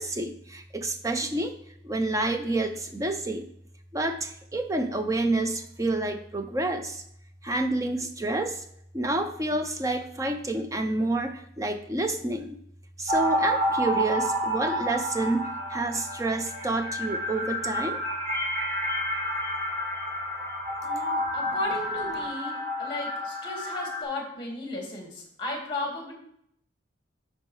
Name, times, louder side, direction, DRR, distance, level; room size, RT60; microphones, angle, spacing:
voice 1, 0.0-1.5 1.8-3.5 3.9-7.0 7.4-8.6 8.9-12.6 13.0-18.0, right 2 dB, 15° right, 7 dB, 0.6 m, -29 dB
sound 1, 13.1-24.0, equal, 40° right, 1.4 m, -30 dB
voice 2, 20.8-26.1, left 2 dB, 25° left, 1 dB, 1.8 m, -35 dB
11.5 x 4.4 x 3.2 m, 0.70 s
head